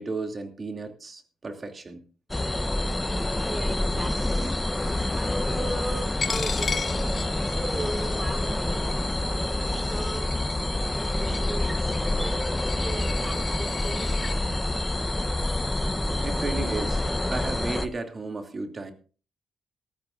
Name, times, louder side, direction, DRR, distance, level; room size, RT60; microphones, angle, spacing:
voice 1, 0.0-2.0 15.9-17.0 17.3-18.9, right 3 dB, 35° right, 5 dB, 2.7 m, -34 dB
sound 1, 2.3-17.9, left 1 dB, 15° left, 1.1 m, -27 dB
voice 2, 3.4-4.5 5.1-7.0 7.3-9.3 9.9-12.3 12.8-14.4, right 1 dB, 15° right, 6 dB, 4.6 m, -37 dB
sound 2, 4.7-9.8, left 3 dB, 30° left, 4.1 m, -41 dB
Coin (dropping), 6.2-14.4, left 6 dB, 50° left, 1.7 m, -37 dB
19.0 x 14.0 x 2.6 m, 0.37 s
cardioid pair, 90°, 0 cm